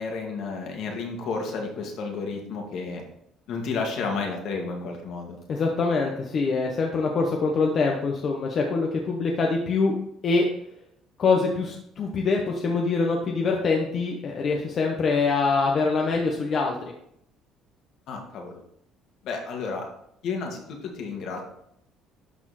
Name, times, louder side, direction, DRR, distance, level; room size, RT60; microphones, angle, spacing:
voice 1, 0.0-3.0 3.5-5.4 18.1-18.6 19.2-19.9 20.2-21.4, left 4 dB, 60° left, 1 dB, 2.1 m, -31 dB
voice 2, 5.5-10.0 10.2-10.5 11.2-16.7, left 4 dB, 40° left, 0 dB, 1.0 m, -24 dB
12.0 x 4.4 x 4.2 m, 0.74 s
cardioid pair, 145°, 0 cm